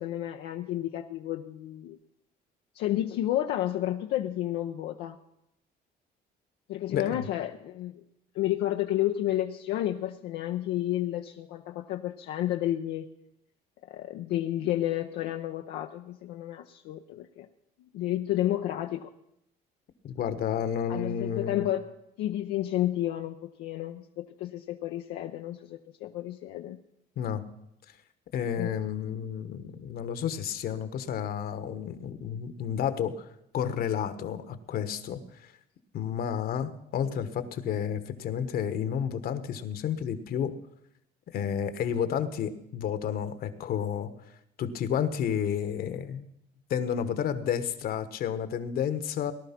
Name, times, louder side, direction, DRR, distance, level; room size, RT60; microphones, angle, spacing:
voice 1, 0.0-2.0 2.7-5.2 6.7-8.0 8.3-13.1 13.9-17.5 17.9-19.1 20.9-21.8 22.2-26.8 28.6-28.8, left 13 dB, 85° left, 4 dB, 0.8 m, -31 dB
voice 2, 6.9-7.3 20.0-21.7 27.2-27.4 28.3-33.2 33.5-35.5 35.9-40.5 41.3-44.1 44.6-46.3 46.7-49.3, left 8 dB, 65° left, 11 dB, 1.4 m, -31 dB
18.5 x 11.5 x 6.0 m, 0.80 s
cardioid pair, 110°, 17 cm